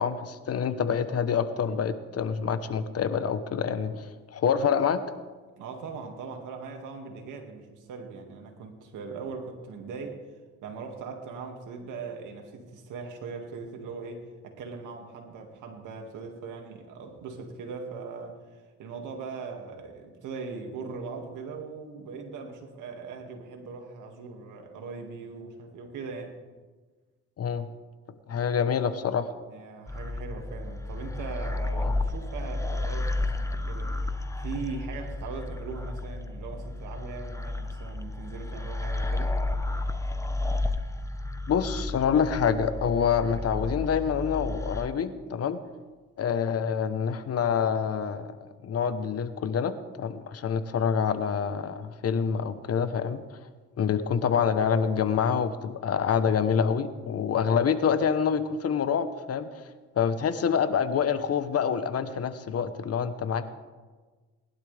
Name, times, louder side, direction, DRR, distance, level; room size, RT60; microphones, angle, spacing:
voice 1, 0.0-5.0 27.4-27.7 28.3-29.3 41.5-45.6 46.2-48.3 48.6-49.7 50.0-53.4 53.8-59.6 60.0-63.5, left 7 dB, 55° left, 11 dB, 1.1 m, -26 dB
voice 2, 5.6-10.3 10.6-26.4 29.5-34.0 34.4-39.3, right 4 dB, 85° right, 3 dB, 2.2 m, -40 dB
sound 1, 29.9-44.8, left 2 dB, 10° left, 0.9 m, -32 dB
20.0 x 11.5 x 3.5 m, 1.3 s
cardioid pair, 90°, 30 cm